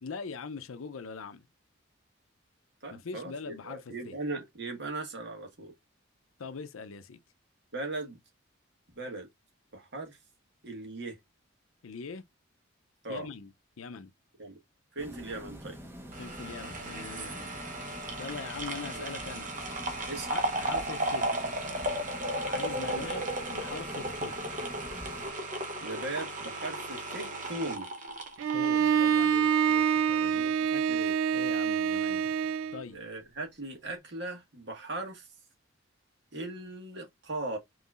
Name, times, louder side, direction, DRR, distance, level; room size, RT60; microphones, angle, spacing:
voice 1, 0.0-1.4 2.9-4.1 6.4-7.2 11.8-12.3 13.1-13.5 13.8-14.1 16.2-17.5 18.2-19.5 20.3-21.3 22.4-24.4 28.5-30.4 31.3-32.3 32.7-33.0, left 4 dB, 85° left, 0.6 m, -42 dB
voice 2, 2.8-5.7 7.7-8.2 8.9-9.3 9.7-10.2 10.6-11.2 13.0-13.3 14.4-14.6 14.9-15.8 18.9-19.1 20.1-20.4 22.8-23.0 25.8-27.9 30.3-31.2 32.9-35.3 36.3-37.6, right 2 dB, 55° right, 1.6 m, -38 dB
sound 1, 15.0-25.3, equal, 10° right, 0.8 m, -46 dB
sound 2, 16.1-29.4 29.7-29.8, right 1 dB, 40° right, 1.1 m, -35 dB
Bowed string instrument, 28.4-32.8, right 7 dB, 80° right, 0.3 m, -26 dB
5.5 x 3.1 x 2.4 m
head